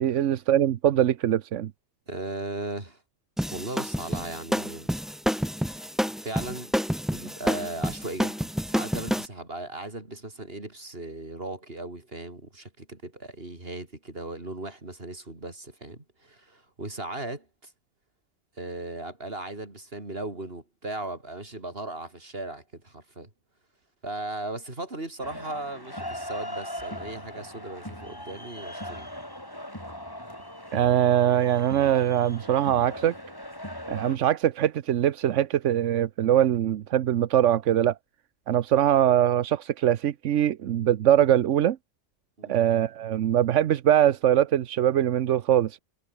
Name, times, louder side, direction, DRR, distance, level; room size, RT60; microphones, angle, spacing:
voice 1, 0.0-1.7 30.7-33.1 33.9-37.9 38.5-41.8 42.5-45.8, right 11 dB, 90° right, 1.1 m, -22 dB
voice 2, 2.1-3.0 3.5-4.9 5.6-5.9 6.2-6.7 7.1-17.7 18.6-23.3 24.0-29.1 42.4-42.6, right 2 dB, 55° right, 4.7 m, -37 dB
sound 1, 3.4-9.3, equal, ahead, 2.1 m, -28 dB
sound 2, 25.2-34.2, equal, 20° left, 6.7 m, -39 dB
omnidirectional pair, 1.2 m